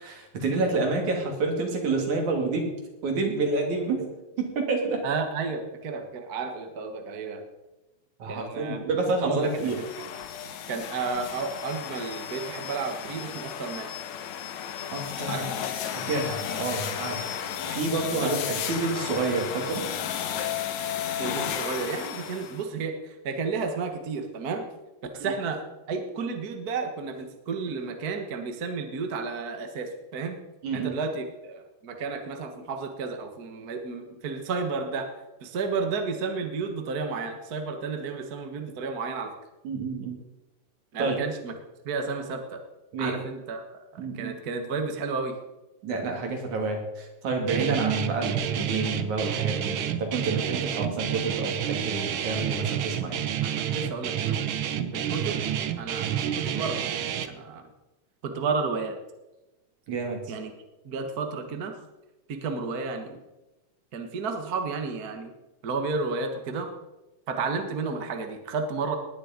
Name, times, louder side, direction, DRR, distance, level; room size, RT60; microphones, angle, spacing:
voice 1, 0.0-2.7 3.0-4.1 4.4-5.0 8.2-9.8 14.9-15.5 15.9-17.3 17.7-19.9 25.2-25.3 30.6-31.0 39.6-40.2 41.0-41.3 42.9-43.2 44.0-44.3 45.8-53.2 54.8-54.9 59.9-60.3, right 3 dB, 65° right, 2 dB, 4.0 m, -29 dB
voice 2, 5.0-7.4 8.3-8.8 9.2-9.7 10.7-13.9 15.3-15.5 18.1-18.4 21.2-24.7 25.1-25.6 25.9-30.4 30.7-35.1 35.4-39.3 40.9-41.5 41.8-42.6 43.0-43.6 43.9-45.3 53.7-54.4 54.9-55.4 55.8-57.0 57.3-57.6 58.2-59.0 60.3-60.5 60.8-61.7 62.3-63.2 63.9-65.3 65.6-66.7 67.3-69.0, right 4 dB, 40° right, 5 dB, 1.5 m, -32 dB
sound 1, 9.4-22.6, left 9 dB, 70° left, 2.3 m, -33 dB
Guitar, 47.5-57.3, right 9 dB, 90° right, 1.1 m, -29 dB
19.5 x 10.0 x 5.2 m, 1.0 s
omnidirectional pair, 3.6 m